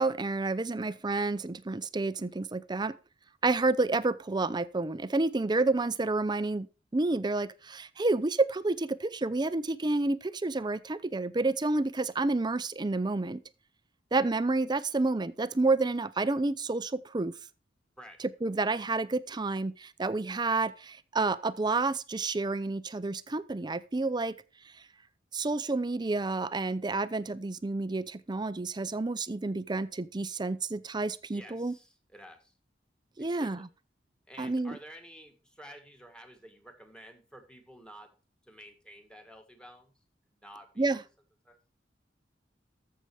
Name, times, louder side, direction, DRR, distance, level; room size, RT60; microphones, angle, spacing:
voice 1, 0.0-2.9 3.4-6.7 6.9-13.4 14.1-17.4 18.4-24.3 25.3-31.7 33.2-33.7 34.4-34.8 40.8-41.0, right 3 dB, 25° right, 0.5 m, -29 dB
voice 2, 31.3-32.5 33.3-33.7 34.3-38.1 38.5-39.9 40.3-41.0 41.4-41.6, equal, 5° left, 1.9 m, -51 dB
14.0 x 6.7 x 4.8 m
head